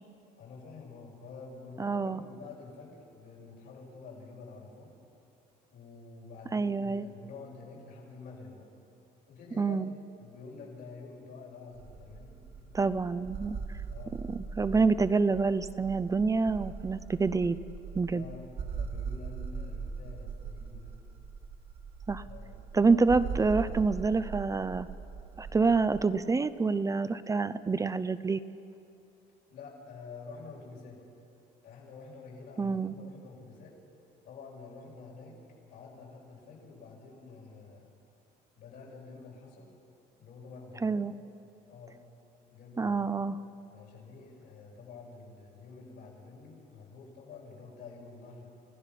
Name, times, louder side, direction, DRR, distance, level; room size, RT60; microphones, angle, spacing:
voice 1, 0.4-4.9 5.7-8.7 9.3-9.8 10.2-12.9 13.9-14.2 18.1-21.0 22.2-22.6 23.0-23.2 29.5-31.0 31.6-33.8 34.2-35.4 35.7-37.9 38.6-39.7 40.2-41.0 41.7-42.0 42.5-43.2 43.7-48.5, left 4 dB, 85° left, -4 dB, 7.5 m, -48 dB
voice 2, 1.8-2.2 6.5-7.1 9.6-9.9 12.7-13.8 14.3-17.6 17.9-18.2 22.1-22.2 22.7-24.9 25.4-28.4 32.6-32.9 40.8-41.2 42.8-43.4, right 4 dB, 20° right, 13 dB, 0.6 m, -27 dB
sound 1, 11.7-26.1, right 5 dB, 60° right, 1.9 m, -40 dB
29.0 x 17.0 x 5.9 m, 2.6 s
cardioid pair, 110°, 17 cm